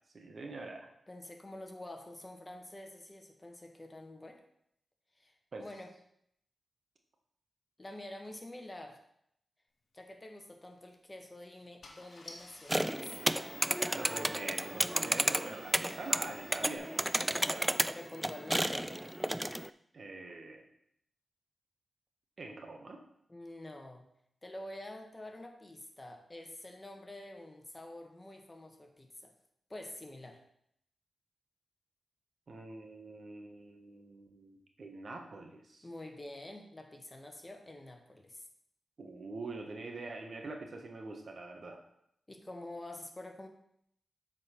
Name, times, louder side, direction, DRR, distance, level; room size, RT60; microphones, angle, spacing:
voice 1, 0.1-0.9 5.5-5.7 13.9-16.9 17.3-17.8 19.9-20.6 22.4-23.0 32.5-35.9 39.0-41.8, right 3 dB, 60° right, 3 dB, 1.3 m, -44 dB
voice 2, 1.1-4.4 5.2-5.9 7.8-9.0 9.9-13.3 17.9-18.9 23.3-24.1 24.4-29.3 29.7-30.4 35.8-38.4 42.3-43.5, left 1 dB, 25° left, 4 dB, 1.3 m, -47 dB
Car / Engine starting, 10.7-10.9 11.5-11.6 11.8-16.8, left 2 dB, 60° left, 1.5 m, -56 dB
sound 1, 12.7-19.7, right 1 dB, 10° right, 0.3 m, -32 dB
8.1 x 4.3 x 5.7 m, 0.73 s
cardioid pair, 55°, 0 cm